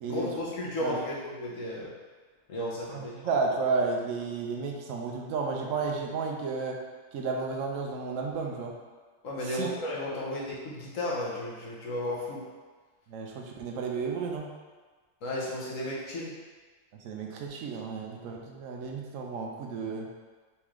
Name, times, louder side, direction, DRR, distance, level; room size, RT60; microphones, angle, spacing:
voice 1, 0.0-1.9 2.5-3.3 9.2-12.4 15.2-16.4, left 1 dB, 75° left, -5 dB, 1.3 m, -34 dB
voice 2, 2.9-6.8 7.1-8.7 9.4-9.7 13.1-14.5 17.0-20.1, right 4 dB, 75° right, 0 dB, 1.0 m, -32 dB
4.2 x 3.1 x 3.6 m, 1.4 s
omnidirectional pair, 1.4 m